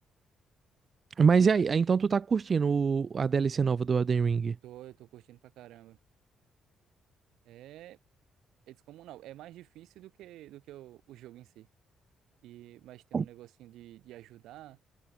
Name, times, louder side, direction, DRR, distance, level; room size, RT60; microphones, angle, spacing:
voice 1, 1.2-4.6 13.1-13.2, right 5 dB, 40° right, 0.6 m, -25 dB
voice 2, 4.6-6.0 7.4-8.0 8.7-11.7 12.4-14.8, right 14 dB, 85° right, 3.7 m, -50 dB
cardioid pair, 90°, 0 cm